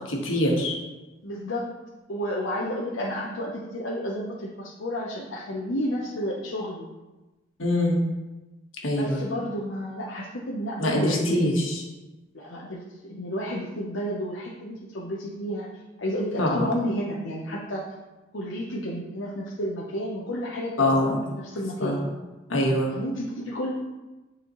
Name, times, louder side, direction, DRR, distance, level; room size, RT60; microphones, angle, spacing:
voice 1, 0.1-0.7 7.6-8.0 8.8-9.2 10.8-11.8 16.4-16.7 20.8-21.2 21.8-22.0 22.5-22.9, left 1 dB, 85° left, -1 dB, 1.4 m, -23 dB
voice 2, 1.2-1.7 2.1-6.9 9.0-11.4 12.3-15.7 16.0-17.8 18.3-21.0 21.3-22.0 22.9-23.7, equal, 70° left, -4 dB, 0.8 m, -31 dB
9.5 x 4.1 x 3.1 m, 1.1 s
head